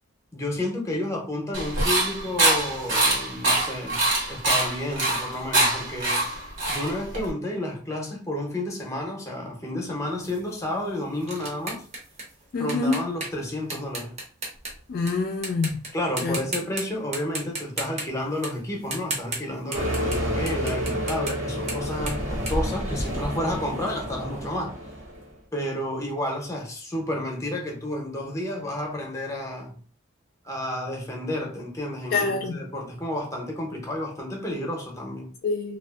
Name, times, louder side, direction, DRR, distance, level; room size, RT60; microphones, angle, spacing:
voice 1, 0.3-4.0 4.3-6.3 6.7-11.8 12.5-14.1 15.9-24.7 25.5-29.8 30.4-35.3, left 1 dB, 15° left, 0.7 m, -31 dB
sound 1, 1.5-7.3, right 2 dB, 70° right, 1.1 m, -24 dB
sound 2, 10.2-15.1 15.4-15.9 16.2-16.8 17.1-23.5, right 2 dB, 35° right, 0.7 m, -35 dB
voice 2, 12.5-13.0 14.9-15.8 16.2-16.4 32.1-32.6 35.4-35.8, left 3 dB, 50° left, 0.3 m, -26 dB
sound 3, 19.7-25.3, equal, 90° right, 1.1 m, -29 dB
2.6 x 2.3 x 2.3 m
head